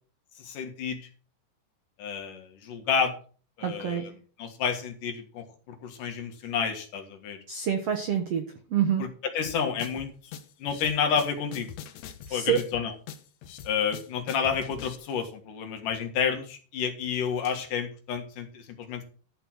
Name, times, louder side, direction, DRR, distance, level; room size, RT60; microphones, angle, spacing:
voice 1, 0.4-1.0 2.0-3.1 3.6-4.1 4.4-7.4 9.3-10.1 10.6-11.7 12.3-12.9 13.6-19.0, left 7 dB, 60° left, 4 dB, 3.1 m, -30 dB
voice 2, 3.6-4.1 7.5-8.4 8.7-9.1 12.3-12.6, right 9 dB, 85° right, 5 dB, 1.3 m, -27 dB
sound 1, 9.4-15.0, left 8 dB, 85° left, 1.5 m, -43 dB
13.0 x 5.6 x 6.1 m, 0.41 s
omnidirectional pair, 4.6 m